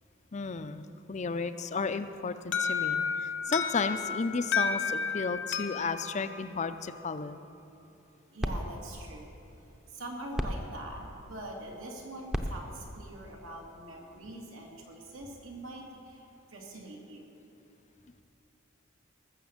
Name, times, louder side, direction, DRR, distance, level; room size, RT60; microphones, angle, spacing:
voice 1, 0.3-7.4, left 4 dB, 35° left, 11 dB, 0.5 m, -33 dB
Alarm, 2.5-7.3, left 6 dB, 60° left, 0.9 m, -32 dB
sound 1, 7.8-14.2, equal, 5° right, 0.7 m, -39 dB
voice 2, 8.3-9.3 9.9-16.2 16.5-17.2, right 1 dB, 85° right, -1 dB, 2.6 m, -43 dB
19.5 x 7.1 x 7.2 m, 2.8 s
head